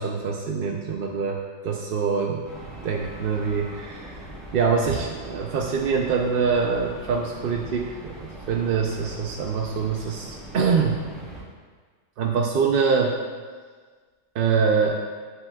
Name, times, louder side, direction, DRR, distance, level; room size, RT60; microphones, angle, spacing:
voice 1, 0.0-2.4 2.8-4.2 4.5-11.0 12.2-13.2 14.3-15.0, right 5 dB, 65° right, 1 dB, 0.5 m, -24 dB
sound 1, 2.4-11.4, right 1 dB, ahead, 1.9 m, -41 dB
9.3 x 5.9 x 2.2 m, 1.5 s
omnidirectional pair, 1.4 m